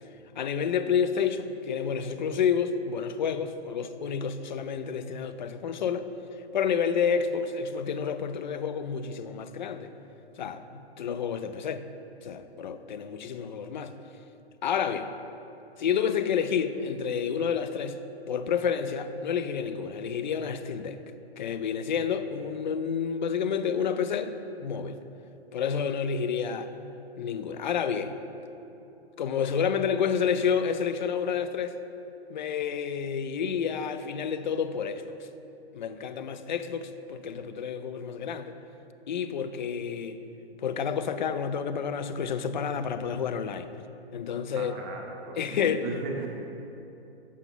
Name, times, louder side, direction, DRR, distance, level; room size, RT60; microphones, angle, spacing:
voice 1, 0.4-6.1 6.5-9.9 10.4-11.8 12.2-13.9 14.6-15.1 15.8-18.0 18.3-21.0 21.4-25.0 25.5-26.7 27.2-28.1 29.2-31.8 32.3-35.2 35.7-38.6 39.1-40.2 40.6-43.7 44.1-44.7 45.4-45.9, left 7 dB, 45° left, 10 dB, 0.5 m, -29 dB
voice 2, 44.5-46.3, right 4 dB, 25° right, 0 dB, 0.7 m, -37 dB
8.4 x 6.8 x 5.5 m, 2.9 s
figure-of-eight pair, 120°, 33 cm